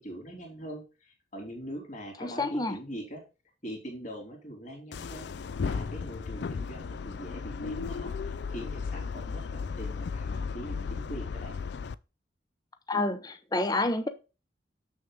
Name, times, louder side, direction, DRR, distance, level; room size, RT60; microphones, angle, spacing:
voice 1, 0.0-3.2 3.6-5.3 5.6-11.5, right 1 dB, 40° left, 2.9 m, -42 dB
voice 2, 2.2-2.7 12.9-14.1, left 2 dB, 20° left, 0.6 m, -29 dB
sound 1, 4.9-12.0, left 5 dB, 65° left, 0.4 m, -35 dB
7.1 x 6.4 x 3.8 m
head